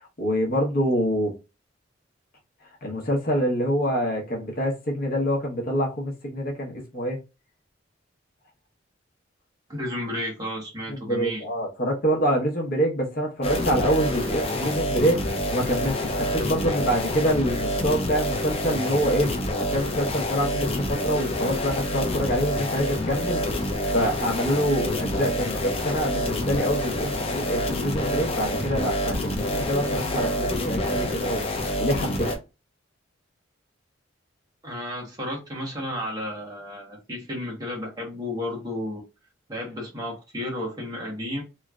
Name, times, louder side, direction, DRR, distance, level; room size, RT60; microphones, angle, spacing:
voice 1, 0.0-1.3 2.8-7.2 10.9-15.2 15.5-19.3 19.6-23.6 23.9-31.5 31.8-32.3, equal, 50° left, 1.0 m, -26 dB
voice 2, 9.7-11.4 34.6-39.0 39.5-41.4, left 1 dB, 20° right, 1.3 m, -32 dB
sound 1, 13.4-32.4, left 1 dB, 30° left, 0.6 m, -27 dB
3.1 x 2.8 x 2.4 m
head